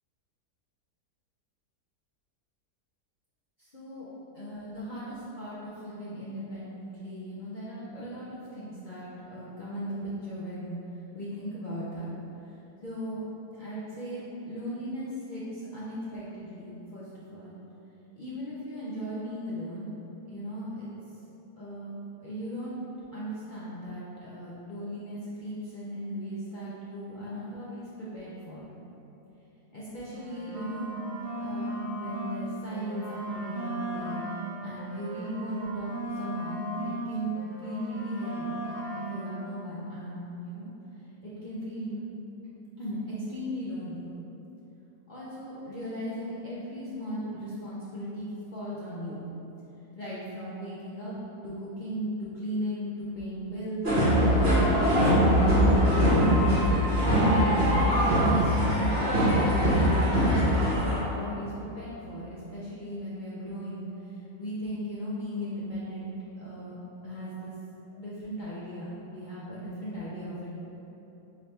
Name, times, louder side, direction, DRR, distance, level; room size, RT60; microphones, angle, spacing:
voice 1, 3.6-4.1 4.3-9.1 9.3-10.8 11.1-12.2 12.8-13.2 13.5-17.0 17.3-17.6 18.2-19.9 20.3-20.9 21.6-22.8 23.1-28.6 29.7-30.9 31.4-34.2 34.6-38.5 38.9-40.7 41.2-42.0 42.4-42.5 42.8-44.1 45.1-49.3 50.0-51.1 51.4-53.8 54.5-56.5 57.4-59.2 59.5-60.1 60.7-63.9 64.4-66.8 67.0-67.5 68.0-70.6, equal, 65° left, -9 dB, 0.4 m, -37 dB
sound 1, 30.1-32.4 32.7-37.1 37.3-39.4, right 1 dB, 80° right, 1.3 m, -36 dB
sound 2, 53.8-61.0, equal, 30° right, 1.7 m, -22 dB
4.2 x 3.8 x 3.3 m, 3.0 s
omnidirectional pair, 1.7 m